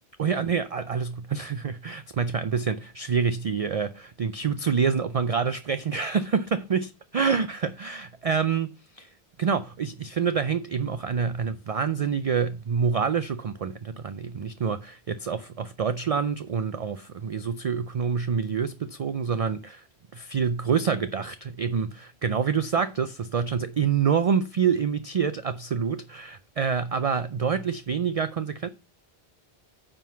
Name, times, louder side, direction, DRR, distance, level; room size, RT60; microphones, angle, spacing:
voice 1, 0.2-9.1 9.4-19.9 20.1-28.7, right 6 dB, 50° right, 0.4 m, -27 dB
9.3 x 3.8 x 5.6 m
omnidirectional pair, 1.1 m